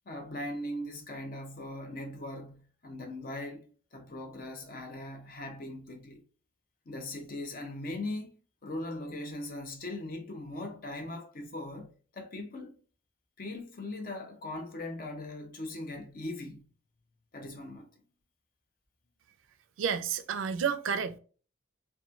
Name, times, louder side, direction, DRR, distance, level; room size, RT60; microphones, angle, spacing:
voice 1, 0.1-6.2 6.9-8.3 8.6-12.7 13.4-16.7 17.3-17.9, left 1 dB, 45° left, 0.6 m, -40 dB
voice 2, 19.8-21.2, right 7 dB, 85° right, 0.4 m, -30 dB
2.9 x 2.2 x 2.4 m
head